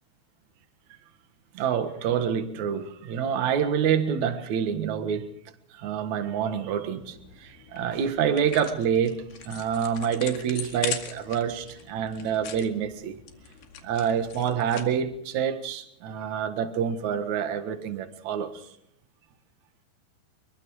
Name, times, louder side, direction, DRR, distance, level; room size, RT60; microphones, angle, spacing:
voice 1, 1.5-5.3 5.7-13.2 13.8-18.6, right 8 dB, 55° right, 2.5 m, -27 dB
sound 1, 7.0-15.2, left 9 dB, 85° left, 4.2 m, -41 dB
25.0 x 22.5 x 4.8 m
omnidirectional pair, 4.6 m